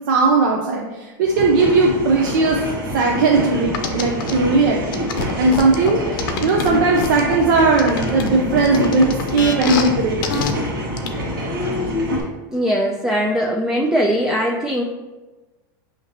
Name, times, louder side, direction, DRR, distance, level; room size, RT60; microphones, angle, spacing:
voice 1, 0.1-2.6 2.9-4.8 5.1-10.3, right 3 dB, 70° right, -1 dB, 0.6 m, -18 dB
sound 1, 1.2-12.2, equal, 85° right, 1.2 m, -26 dB
sound 2, 3.7-4.3 4.9-7.4 7.8-9.9 10.2-10.5 11.0-11.1, left 6 dB, 75° left, 0.5 m, -26 dB
voice 2, 12.5-14.8, equal, 5° right, -1 dB, 0.3 m, -20 dB
5.7 x 2.9 x 2.8 m, 1.2 s
supercardioid pair, 125°, 11 cm